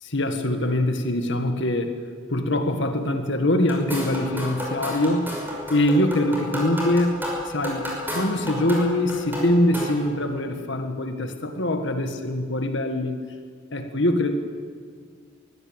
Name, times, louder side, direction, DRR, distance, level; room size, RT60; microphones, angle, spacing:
voice 1, 0.0-2.0 2.3-5.3 5.7-7.9 8.1-13.2 13.7-14.3, left 1 dB, 65° left, 6 dB, 1.9 m, -23 dB
sound 1, 3.7-10.1, left 1 dB, 10° right, 5.8 m, -32 dB
23.5 x 16.0 x 9.0 m, 2.1 s
head